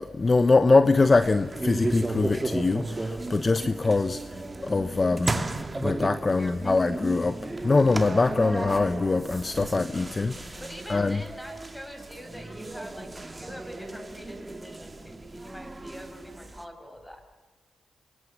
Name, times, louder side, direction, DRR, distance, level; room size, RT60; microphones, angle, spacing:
voice 1, 0.0-5.4 5.8-7.4 7.6-10.6 10.9-11.2, left 3 dB, 40° left, 11 dB, 1.0 m, -23 dB
sound 1, 0.8-16.6, right 2 dB, 30° right, 2.4 m, -35 dB
voice 2, 6.4-7.0 10.6-17.4, equal, 10° left, 5 dB, 6.6 m, -44 dB
27.0 x 23.5 x 7.4 m, 1.4 s
supercardioid pair, 45°, 0 cm